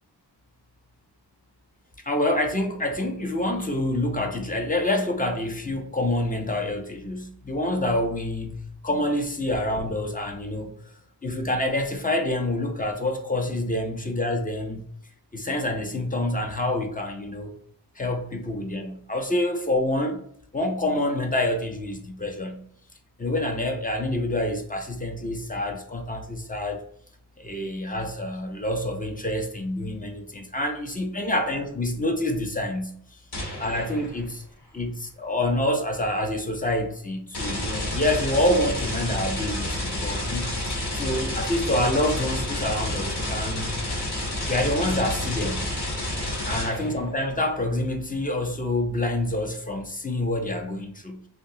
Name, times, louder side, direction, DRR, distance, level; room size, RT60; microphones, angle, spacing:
voice 1, 2.1-10.7 11.2-14.9 15.3-17.5 18.0-20.2 20.5-22.6 23.2-26.8 27.4-33.0 33.6-34.4 34.7-40.5 40.9-43.8 44.5-45.7 46.5-51.2, left 1 dB, 20° left, 4 dB, 0.5 m, -27 dB
sound 1, 33.3-34.3 37.3-47.1, left 1 dB, 70° left, 0.9 m, -30 dB
3.3 x 2.8 x 2.7 m, 0.65 s
wide cardioid pair, 85°, 40 cm